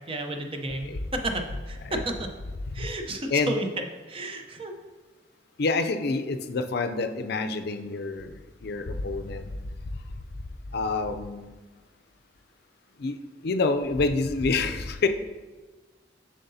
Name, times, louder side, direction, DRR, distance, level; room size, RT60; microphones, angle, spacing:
voice 1, 0.0-2.3 2.7-3.7 4.1-4.7, right 2 dB, 30° right, 4 dB, 0.7 m, -32 dB
voice 2, 5.6-8.3 8.6-9.4 10.7-11.6 13.0-13.2 13.4-15.1, left 3 dB, 60° left, 8 dB, 0.5 m, -27 dB
7.6 x 6.4 x 2.7 m, 1.3 s
head